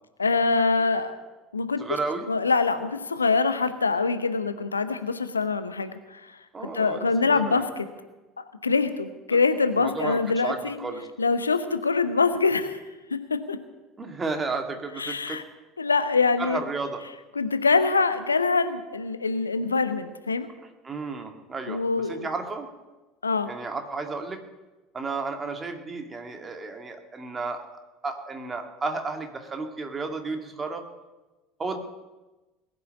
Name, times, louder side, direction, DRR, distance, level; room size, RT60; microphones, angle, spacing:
voice 1, 0.2-1.2 1.5-1.8 2.3-6.3 6.7-7.9 8.4-10.8 11.2-12.8 13.1-13.6 15.0-15.4 15.8-16.6 17.3-20.5 21.7-22.3 23.2-23.5, left 4 dB, 80° left, 11 dB, 0.9 m, -24 dB
voice 2, 1.8-2.3 6.5-7.7 9.7-11.1 14.0-15.4 16.4-17.0 20.8-21.8 22.1-22.7 23.5-24.4 24.9-27.6 28.0-30.8 31.6-31.8, right 3 dB, 25° right, 5 dB, 2.3 m, -32 dB
20.0 x 6.9 x 9.4 m, 1.1 s
figure-of-eight pair, 65°, 0 cm